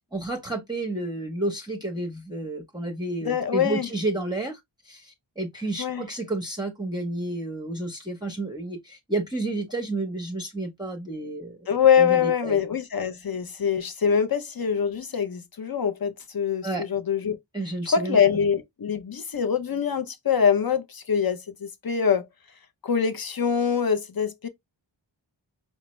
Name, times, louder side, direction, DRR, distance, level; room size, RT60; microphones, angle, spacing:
voice 1, 0.1-11.7 12.0-12.6 16.6-16.8 17.5-18.2, right 2 dB, 10° right, 0.8 m, -31 dB
voice 2, 3.2-3.9 5.8-6.0 11.7-17.4 17.9-22.3 22.8-24.5, left 7 dB, 50° left, 0.7 m, -24 dB
4.8 x 2.1 x 3.1 m
wide cardioid pair, 55°, 46 cm